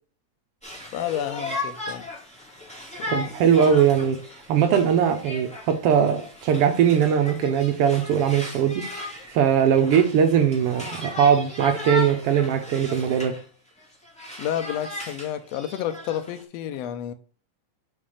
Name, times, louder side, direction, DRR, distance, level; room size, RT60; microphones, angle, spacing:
Conversation, 0.6-13.4 13.8-16.4, left 1 dB, 5° left, 1.6 m, -36 dB
voice 1, 0.9-2.0 3.0-3.1 14.4-17.1, left 10 dB, 80° left, 1.5 m, -30 dB
voice 2, 3.1-4.2 4.5-8.8 9.3-13.3, right 8 dB, 85° right, 1.3 m, -20 dB
5.7 x 4.3 x 6.3 m
omnidirectional pair, 3.7 m